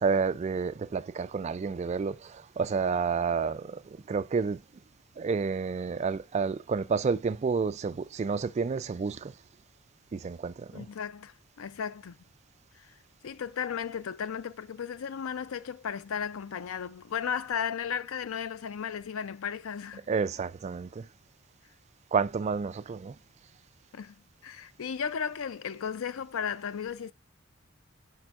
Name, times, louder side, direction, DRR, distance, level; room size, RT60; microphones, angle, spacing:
voice 1, 0.0-3.8 4.1-4.6 5.2-9.3 10.1-10.8 20.1-21.0 22.1-23.1, right 5 dB, 35° right, 0.3 m, -30 dB
voice 2, 10.7-12.2 12.8-12.9 13.2-20.1 23.9-24.1 24.4-27.1, left 7 dB, 85° left, 0.5 m, -35 dB
10.5 x 4.4 x 2.4 m
head